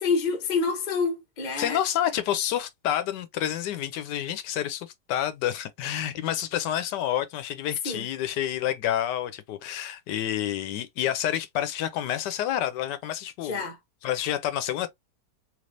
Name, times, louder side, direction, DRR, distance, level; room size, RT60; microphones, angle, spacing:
voice 1, 0.0-1.8 7.8-8.1 13.4-13.8, left 4 dB, 35° left, 0.8 m, -27 dB
voice 2, 1.6-13.6 14.0-14.9, left 11 dB, 90° left, 1.2 m, -29 dB
3.3 x 3.1 x 2.5 m
omnidirectional pair, 1.8 m